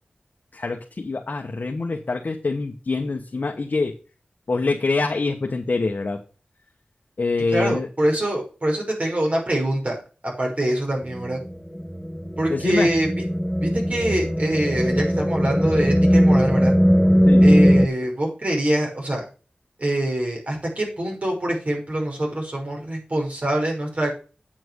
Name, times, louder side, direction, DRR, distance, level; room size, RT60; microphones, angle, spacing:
voice 1, 0.5-3.9 4.5-6.2 7.2-7.9 12.5-12.9 17.2-17.5, left 3 dB, 65° left, 2 dB, 1.3 m, -25 dB
voice 2, 7.5-10.0 10.2-11.4 12.4-13.1 13.6-16.7 17.4-19.2 19.8-24.1, right 1 dB, 50° right, -1 dB, 5.8 m, -24 dB
sound 1, 11.1-17.9, equal, 5° left, 0.7 m, -19 dB
8.6 x 6.0 x 6.3 m, 0.35 s
wide cardioid pair, 60°, 3 cm